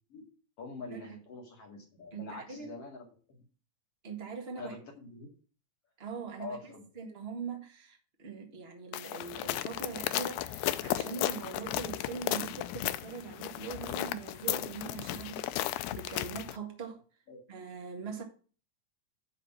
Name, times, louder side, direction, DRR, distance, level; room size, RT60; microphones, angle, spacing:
voice 1, 0.6-3.4 4.6-5.3 6.4-6.9 17.3-17.4, left 3 dB, 45° left, 2.9 m, -45 dB
voice 2, 2.1-2.7 4.0-4.8 6.0-17.0 17.5-18.2, right 5 dB, 35° right, 0.9 m, -42 dB
sound 1, 8.9-16.6, left 14 dB, 85° left, 1.7 m, -35 dB
9.7 x 4.1 x 7.2 m
omnidirectional pair, 4.0 m